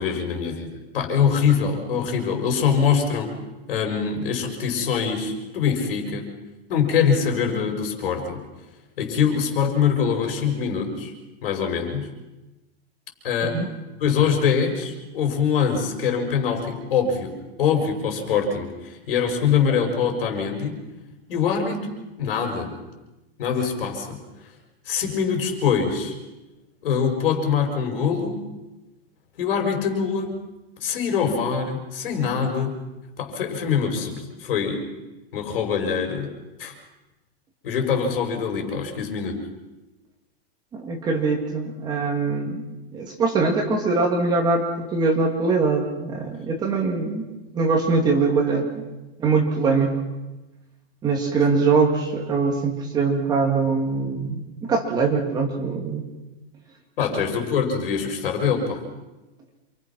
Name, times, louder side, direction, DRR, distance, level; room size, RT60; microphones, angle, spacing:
voice 1, 0.0-3.3 3.7-6.3 6.7-8.5 9.0-11.1 11.4-12.1 13.2-13.6 14.0-20.8 21.3-21.9 22.2-22.7 23.4-24.2 24.9-26.2 26.8-28.4 29.4-30.3 30.8-32.7 33.2-34.9 35.3-36.3 36.6-36.7 37.6-39.4 57.0-58.8, left 6 dB, 60° left, 4 dB, 6.4 m, -23 dB
voice 2, 40.8-42.6 42.9-47.2 47.5-48.8 49.2-49.9 51.0-56.0, right 4 dB, 10° right, 1 dB, 2.1 m, -22 dB
28.5 x 25.5 x 6.1 m, 1.1 s
supercardioid pair, 180°, 32 cm